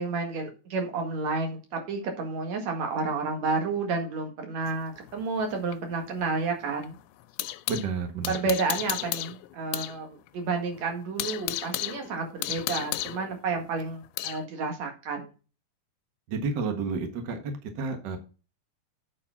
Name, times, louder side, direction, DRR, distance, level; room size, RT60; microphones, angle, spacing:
voice 1, 0.0-7.0 8.3-15.3, right 4 dB, 55° right, 4 dB, 2.8 m, -31 dB
sound 1, 4.7-7.9 8.2-10.0 10.3-10.4 10.8-14.4, left 16 dB, 85° left, 2.5 m, -34 dB
voice 2, 7.7-8.5 16.3-18.2, right 4 dB, 75° right, 6 dB, 1.0 m, -31 dB
8.7 x 5.2 x 5.8 m, 0.33 s
omnidirectional pair, 4.3 m